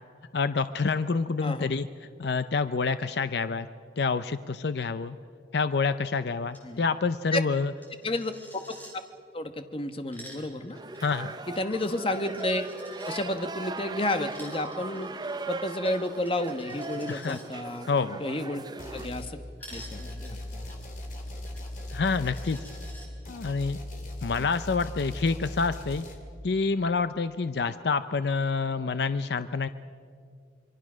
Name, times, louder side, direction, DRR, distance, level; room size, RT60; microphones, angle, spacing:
voice 1, 0.3-1.9 2.2-3.7 4.0-5.2 5.5-7.7 11.0-11.3 17.1-17.4 17.9-18.2 21.9-22.6 23.3-23.8 24.2-26.0 26.4-29.7, left 4 dB, 65° left, 12 dB, 0.5 m, -27 dB
voice 2, 1.4-1.7 6.6-6.8 7.3-7.4 8.0-8.3 8.7-8.8 9.3-10.8 11.5-12.6 13.1-15.1 15.5-17.9 18.2-18.6 18.9-19.4 19.7-20.6 24.4-24.5, left 1 dB, 30° left, 8 dB, 1.1 m, -31 dB
Coin (dropping), 6.5-6.7 6.9-7.0 7.3-8.9 9.9-13.2 14.1-17.4 19.6-23.1, equal, 10° left, 4.2 m, -50 dB
sound 1, 10.7-19.1, right 3 dB, 20° right, 0.7 m, -39 dB
sound 2, 18.8-19.3 19.7-26.2, left 1 dB, 45° left, 2.9 m, -39 dB
26.5 x 22.5 x 6.2 m, 2.3 s
head